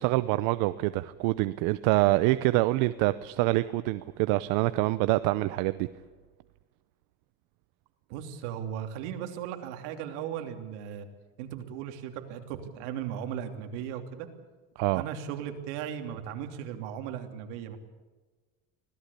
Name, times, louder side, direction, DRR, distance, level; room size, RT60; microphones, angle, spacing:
voice 1, 0.0-5.9 14.8-15.0, right 18 dB, 75° right, 14 dB, 0.8 m, -26 dB
voice 2, 8.1-11.1 11.4-14.3 14.9-17.8, right 9 dB, 90° right, 6 dB, 3.0 m, -37 dB
25.0 x 17.5 x 8.5 m, 1.3 s
cardioid pair, 140°, 34 cm